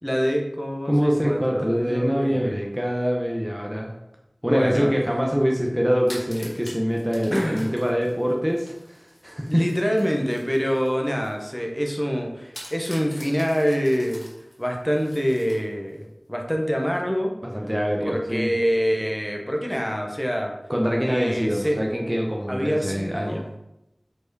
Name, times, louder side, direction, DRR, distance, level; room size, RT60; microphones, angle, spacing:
voice 1, 0.0-2.6 4.5-4.9 7.3-7.7 9.4-14.2 14.6-17.3 18.0-20.5 21.0-21.8 22.5-23.4, equal, 10° left, 2 dB, 1.1 m, -25 dB
voice 2, 0.8-3.9 4.4-9.6 17.5-18.5 20.7-23.5, equal, 10° right, -1 dB, 0.9 m, -24 dB
sound 1, 5.9-11.4 11.8-11.9 12.5-16.0, left 1 dB, 65° left, 2.1 m, -45 dB
5.1 x 4.6 x 4.7 m, 0.90 s
wide cardioid pair, 45°, 0 cm